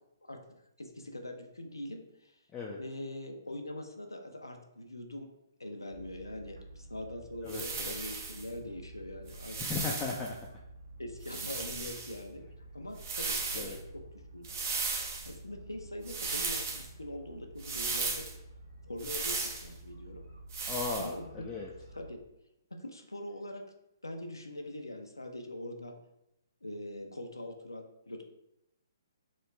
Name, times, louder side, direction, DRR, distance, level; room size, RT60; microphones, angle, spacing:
voice 1, 0.3-2.4 2.8-5.3 5.6-9.6 11.0-12.4 12.7-14.0 14.3-14.5 15.2-18.3 18.9-20.2 21.0-21.3 21.9-22.2 22.7-23.6 24.0-25.9 26.6-28.2, left 1 dB, 90° left, 4 dB, 0.5 m, -42 dB
sound 1, 5.9-22.1, right 2 dB, 80° right, 0.8 m, -51 dB
voice 2, 7.4-8.0 9.6-10.4 13.5-13.8 20.7-21.7, left 4 dB, 15° left, -3 dB, 0.3 m, -37 dB
sound 2, 7.5-8.4 9.3-10.3 11.2-12.2 12.9-13.8 14.4-15.3 16.1-16.9 17.6-18.3 19.0-19.7 20.5-21.1, right 4 dB, 45° right, 0.6 m, -36 dB
3.0 x 2.3 x 3.2 m, 0.84 s
figure-of-eight pair, 130°, 2 cm